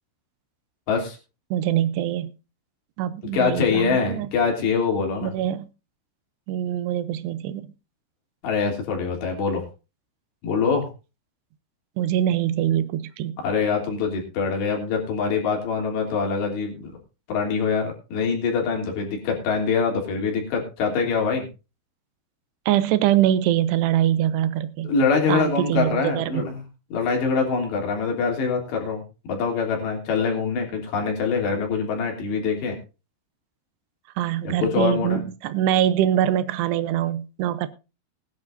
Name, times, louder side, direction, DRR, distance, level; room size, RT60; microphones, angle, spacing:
voice 1, 1.5-2.3 3.0-4.3 5.2-5.7 6.5-7.7 12.0-13.4 22.7-24.9 25.3-26.5 34.2-37.7, right 11 dB, 80° right, 14 dB, 2.9 m, -23 dB
voice 2, 3.3-5.3 8.4-9.6 10.4-10.9 13.4-17.0 17.3-21.5 24.8-26.6 26.9-29.0 29.3-32.8 34.4-35.2, left 5 dB, 90° left, 1 dB, 5.4 m, -24 dB
20.0 x 11.0 x 2.6 m, 0.31 s
omnidirectional pair, 4.8 m